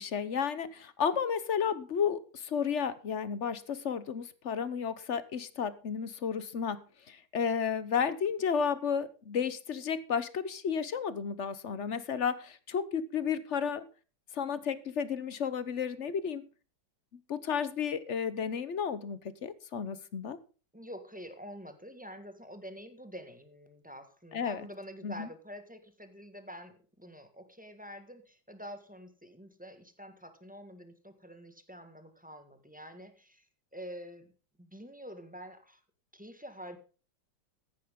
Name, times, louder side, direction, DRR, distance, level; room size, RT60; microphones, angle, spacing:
voice 1, 0.0-13.8 14.3-16.5 17.3-20.4 24.3-24.7 25.0-25.3, left 7 dB, 50° left, 15 dB, 1.1 m, -32 dB
voice 2, 20.7-33.5 33.7-34.3 34.6-35.8 36.1-36.8, equal, 5° right, 8 dB, 1.6 m, -47 dB
14.5 x 10.0 x 3.8 m, 0.36 s
omnidirectional pair, 2.0 m